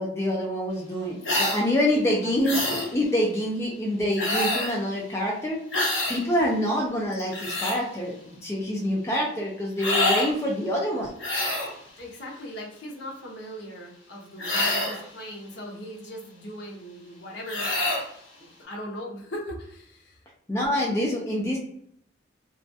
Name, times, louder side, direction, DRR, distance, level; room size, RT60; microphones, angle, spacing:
voice 1, 0.0-2.6 2.9-5.6 6.1-11.1 20.5-21.6, equal, 15° left, -3 dB, 0.3 m, -26 dB
sound 1, 1.2-1.6 2.4-2.9 4.2-4.8 5.7-6.2 7.1-7.8 9.8-10.3 11.2-11.7 14.4-15.0 17.5-18.0, left 1 dB, 85° left, 1.1 m, -26 dB
voice 2, 1.9-2.7 12.0-17.9 18.4-20.2, equal, 65° left, -2 dB, 0.7 m, -39 dB
2.3 x 2.2 x 2.5 m, 0.71 s
head